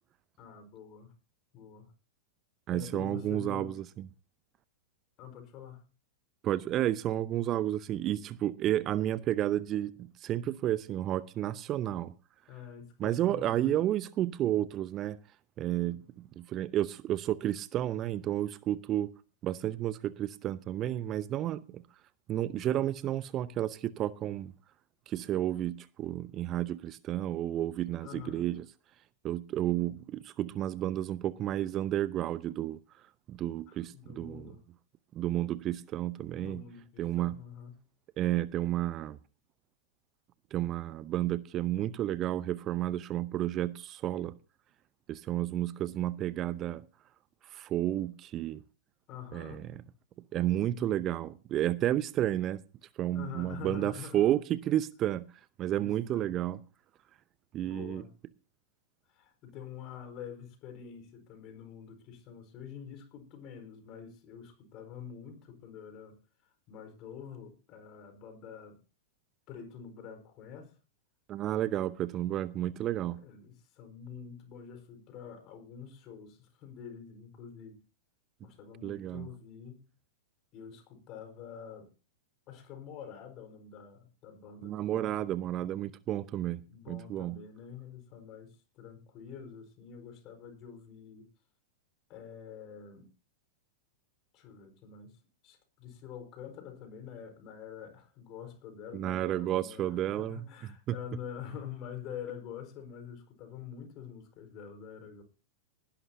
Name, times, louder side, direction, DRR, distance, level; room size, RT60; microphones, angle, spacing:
voice 1, 0.4-1.1 1.5-1.9 2.7-3.8 5.2-5.8 12.5-13.8 28.0-28.5 33.7-34.6 36.4-37.8 49.1-49.7 53.1-54.3 55.7-56.3 57.6-58.1 59.1-68.8 69.5-70.8 73.1-77.8 78.4-79.8 80.5-81.9 82.5-85.7 86.7-91.3 92.1-93.1 94.3-105.2, left 8 dB, 40° left, 4.5 m, -46 dB
voice 2, 2.7-4.0 6.4-9.9 10.2-12.1 13.0-15.2 15.6-19.1 19.4-21.8 22.3-24.5 25.1-28.6 29.2-32.8 33.3-34.5 35.1-36.6 37.0-37.3 38.2-39.2 40.5-44.3 45.1-46.8 47.5-48.6 49.3-49.8 50.3-52.6 53.0-55.3 55.6-56.6 57.5-58.0 71.3-73.2 78.8-79.3 84.6-86.6 86.9-87.4 98.9-100.4 100.9-101.0, right 12 dB, 30° right, 0.6 m, -31 dB
20.0 x 12.0 x 2.7 m
figure-of-eight pair, 95°, 0 cm